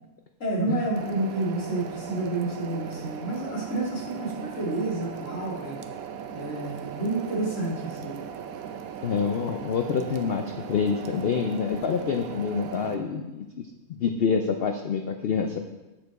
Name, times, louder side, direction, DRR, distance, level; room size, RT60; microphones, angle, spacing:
voice 1, 0.4-5.8 6.3-8.1, right 2 dB, 55° left, -5 dB, 2.4 m, -29 dB
sound 1, 1.0-13.0, right 8 dB, 75° right, 1.0 m, -38 dB
voice 2, 9.0-13.4 13.9-15.6, left 6 dB, 80° left, 5 dB, 0.5 m, -27 dB
7.6 x 6.5 x 4.0 m, 1.1 s
omnidirectional pair, 1.6 m